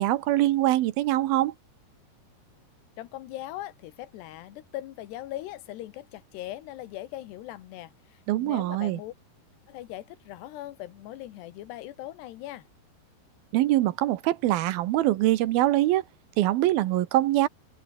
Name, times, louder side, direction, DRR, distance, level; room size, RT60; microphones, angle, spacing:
voice 1, 0.0-1.5 8.3-9.0 13.5-16.0 16.4-17.5, right 15 dB, 75° right, 2.6 m, -23 dB
voice 2, 3.0-9.1 9.7-12.7, left 14 dB, 90° left, 3.4 m, -40 dB
omnidirectional pair, 4.7 m